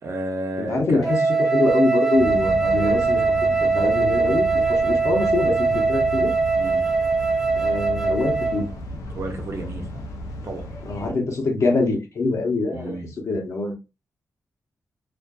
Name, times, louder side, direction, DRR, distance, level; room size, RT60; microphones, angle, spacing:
voice 1, 0.0-1.1 6.6-6.9 9.1-10.1 10.4-10.7 12.7-13.1, right 2 dB, 60° right, 0.8 m, -32 dB
voice 2, 0.6-6.3 7.6-8.6 10.9-13.0 13.3-13.7, left 3 dB, 65° left, 0.9 m, -24 dB
Wind instrument woodwind instrument, 1.0-8.7, right 4 dB, 10° right, 0.6 m, -21 dB
sound 1, 2.1-11.1, left 1 dB, 85° left, 0.5 m, -34 dB
2.5 x 2.5 x 2.3 m
cardioid pair, 70°, 6 cm